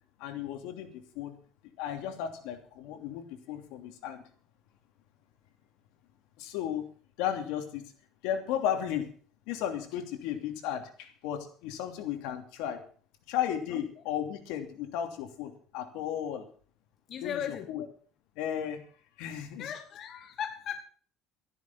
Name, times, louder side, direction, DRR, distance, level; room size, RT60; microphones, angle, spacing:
voice 1, 0.2-1.3 1.8-4.2 6.4-6.8 7.2-7.8 8.2-9.1 9.5-12.8 13.3-16.5 17.2-17.9 18.4-18.8 19.2-19.7, left 10 dB, 85° left, 4 dB, 3.0 m, -34 dB
voice 2, 17.1-17.7 19.6-20.8, left 8 dB, 45° left, 7 dB, 1.2 m, -37 dB
13.5 x 11.0 x 5.7 m, 0.43 s
cardioid pair, 145°, 0 cm